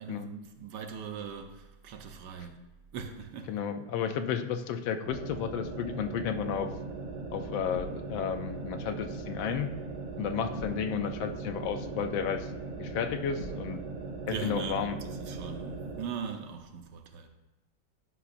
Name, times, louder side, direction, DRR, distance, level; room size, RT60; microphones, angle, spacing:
voice 1, 0.0-2.6 2.9-3.5 13.7-13.8 14.3-17.3, right 6 dB, 70° right, 1.2 m, -40 dB
voice 2, 3.5-6.7 7.3-9.7 10.2-13.8 14.3-15.0, left 7 dB, 85° left, 1.4 m, -32 dB
sound 1, 5.0-16.1, right 3 dB, 85° right, 2.2 m, -39 dB
9.8 x 5.7 x 2.5 m
omnidirectional pair, 2.1 m